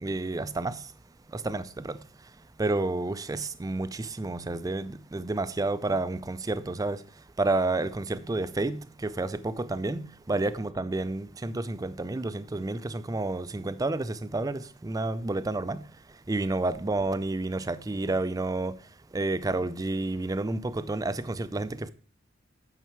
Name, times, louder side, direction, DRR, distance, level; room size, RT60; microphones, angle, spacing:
voice 1, 0.0-0.8 1.3-2.0 2.6-7.0 7.4-15.8 16.3-18.7 19.1-21.9, right 2 dB, 20° right, 0.4 m, -30 dB
9.2 x 5.7 x 4.5 m
head